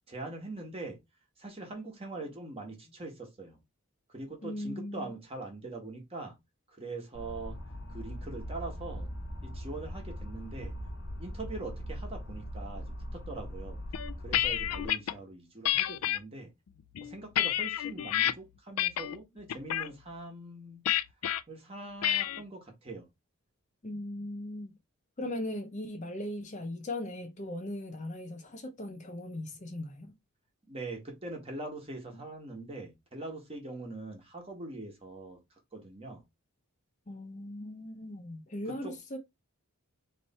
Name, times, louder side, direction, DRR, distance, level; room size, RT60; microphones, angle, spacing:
voice 1, 0.1-1.0 1.4-3.6 4.1-6.3 6.7-7.6 7.9-9.1 9.4-10.7 11.2-13.8 14.2-16.5 17.0-20.8 21.5-23.0 30.7-35.4 35.7-36.2 38.8-38.9, right 2 dB, 25° right, 1.3 m, -42 dB
voice 2, 4.4-5.1 23.8-24.7 25.2-30.1 37.1-39.2, left 1 dB, 35° left, 0.7 m, -38 dB
sound 1, 7.1-14.9, equal, 55° left, 1.0 m, -40 dB
sound 2, 13.9-15.1 15.6-16.2 16.8-18.3 18.8-19.2 19.5-19.9 20.9-21.4 22.0-22.4, left 12 dB, 85° left, 0.4 m, -29 dB
3.3 x 3.1 x 4.2 m
head